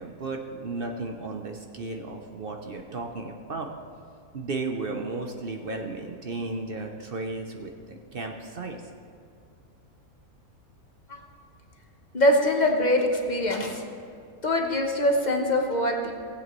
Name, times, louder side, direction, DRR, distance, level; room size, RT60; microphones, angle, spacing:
voice 1, 0.0-3.7 4.3-8.8, right 3 dB, 50° right, 3 dB, 0.8 m, -34 dB
voice 2, 12.1-13.8 14.4-16.1, left 1 dB, 35° left, 1 dB, 1.1 m, -23 dB
18.5 x 8.1 x 3.1 m, 2.4 s
omnidirectional pair, 1.5 m